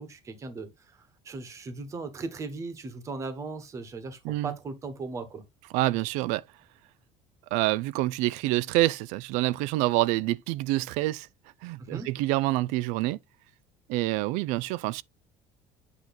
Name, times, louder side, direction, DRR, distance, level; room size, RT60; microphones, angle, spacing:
voice 1, 0.0-5.4 11.8-12.1, right 3 dB, 25° right, 1.3 m, -38 dB
voice 2, 5.7-6.4 7.5-11.3 11.6-13.2 13.9-15.0, right 17 dB, 80° right, 0.4 m, -27 dB
8.2 x 3.0 x 4.1 m
cardioid pair, 170°, 12 cm